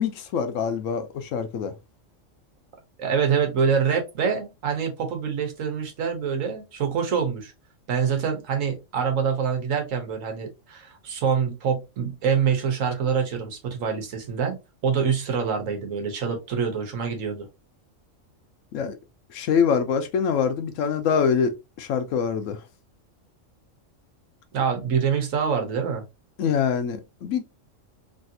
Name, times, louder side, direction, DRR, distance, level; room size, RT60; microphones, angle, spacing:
voice 1, 0.0-1.7 18.7-19.0 19.3-22.6 26.4-27.4, left 7 dB, 75° left, 1.0 m, -24 dB
voice 2, 3.0-7.5 7.9-14.6 14.8-17.5 24.5-26.0, right 6 dB, 80° right, 1.3 m, -25 dB
3.2 x 2.6 x 2.6 m
omnidirectional pair, 1.3 m